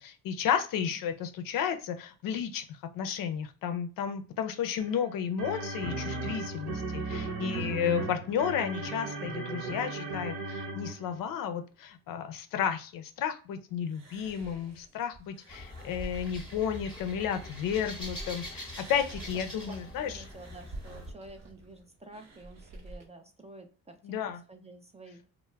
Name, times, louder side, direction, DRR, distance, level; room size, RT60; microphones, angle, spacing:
voice 1, 0.0-2.7 2.9-20.2 24.0-24.4, left 8 dB, 65° left, 8 dB, 0.5 m, -32 dB
sound 1, 4.8-11.2, right 2 dB, 65° right, 1.0 m, -36 dB
voice 2, 7.4-7.7 19.7-25.2, right 4 dB, 20° right, 5 dB, 0.3 m, -48 dB
sound 2, 13.9-18.2 18.6-23.1, right 2 dB, 45° right, 0.8 m, -48 dB
sound 3, 15.5-21.1, left 1 dB, 10° left, 0.9 m, -44 dB
2.2 x 2.1 x 3.1 m, 0.35 s
cardioid pair, 85°, 37 cm